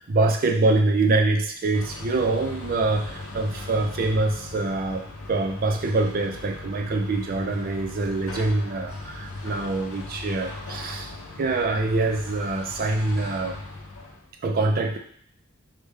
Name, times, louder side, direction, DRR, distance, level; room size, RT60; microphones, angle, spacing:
voice 1, 0.0-11.1 11.4-13.6 14.4-15.0, right 2 dB, 45° right, 4 dB, 0.4 m, -25 dB
sound 1, 1.7-14.2, left 2 dB, 80° left, 0.6 m, -38 dB
3.4 x 2.2 x 3.2 m, 0.62 s
head